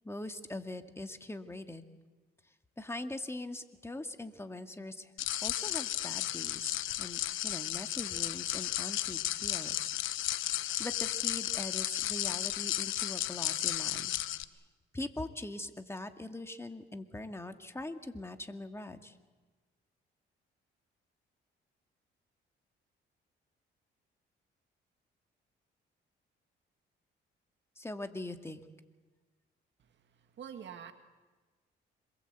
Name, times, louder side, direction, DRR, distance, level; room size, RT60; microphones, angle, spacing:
voice 1, 0.0-1.8 2.8-5.1 5.4-9.9 10.2-10.5 10.8-14.1 14.9-19.2 27.8-28.6, left 2 dB, 15° left, 6 dB, 2.1 m, -42 dB
sound 1, 5.2-14.4, left 13 dB, 85° left, 1.0 m, -34 dB
voice 2, 29.8-30.9, right 8 dB, 65° right, 7 dB, 2.1 m, -47 dB
26.5 x 22.0 x 8.2 m, 1.3 s
cardioid pair, 90°, 20 cm